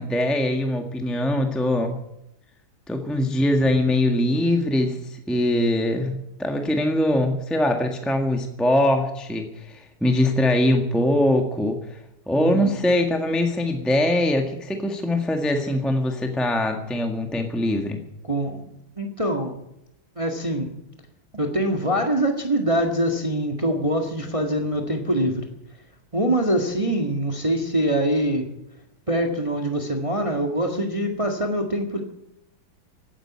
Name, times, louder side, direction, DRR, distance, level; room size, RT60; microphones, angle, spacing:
voice 1, 0.0-2.0 2.9-12.0 12.3-18.0, left 1 dB, ahead, 3 dB, 1.4 m, -22 dB
voice 2, 12.4-12.8 18.2-19.6 20.1-20.7 21.3-25.5 26.1-28.5 29.1-32.0, right 1 dB, 15° right, 3 dB, 1.7 m, -24 dB
16.5 x 9.3 x 9.3 m, 0.84 s
omnidirectional pair, 2.2 m